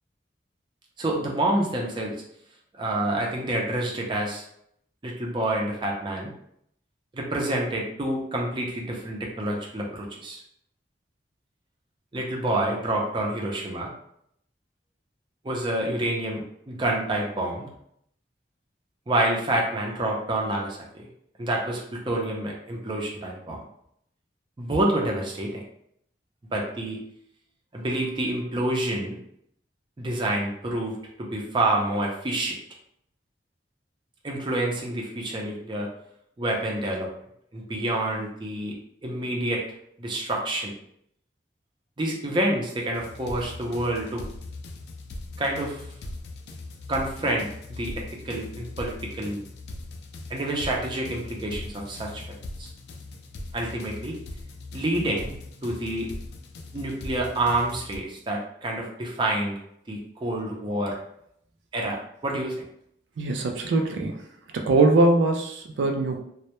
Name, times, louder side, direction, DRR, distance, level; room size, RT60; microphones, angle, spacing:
voice 1, 1.0-2.1 2.7-4.4 5.0-6.3 7.1-10.4 12.1-13.9 15.4-17.7 19.1-21.1 21.4-23.6 24.6-25.6 26.5-27.0 27.7-29.2 30.0-32.5 34.2-35.9 36.4-37.1 37.5-38.8 39.0-39.6 40.0-40.7 42.0-44.2 45.4-45.8 46.9-49.4 50.3-52.2 52.6-52.7 53.5-54.2 54.7-55.3 55.6-56.1 56.7-59.6 59.9-61.0 61.7-62.6, right 1 dB, 25° right, -1 dB, 0.4 m, -28 dB
sound 1, 42.9-58.0, left 2 dB, 60° left, 0.3 m, -40 dB
voice 2, 63.2-64.2 64.5-66.2, right 2 dB, 90° right, 4 dB, 0.3 m, -22 dB
2.1 x 2.0 x 2.9 m, 0.71 s
head